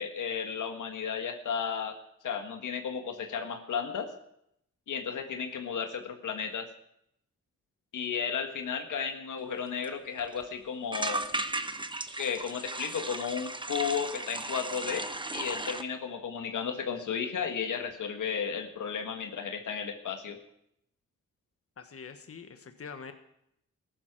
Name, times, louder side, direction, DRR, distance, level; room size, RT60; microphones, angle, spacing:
voice 1, 0.0-2.0 2.2-4.1 4.9-6.7 7.9-11.2 12.2-15.0 15.3-20.4, left 7 dB, 80° left, 6 dB, 1.6 m, -34 dB
sound 1, 9.5-9.6 9.8-9.9 10.2-10.4 10.9-15.8, right 2 dB, 15° right, 1.0 m, -36 dB
voice 2, 21.8-23.1, left 5 dB, 50° left, 7 dB, 1.4 m, -44 dB
15.0 x 12.0 x 6.0 m, 0.76 s
cardioid pair, 70°, 31 cm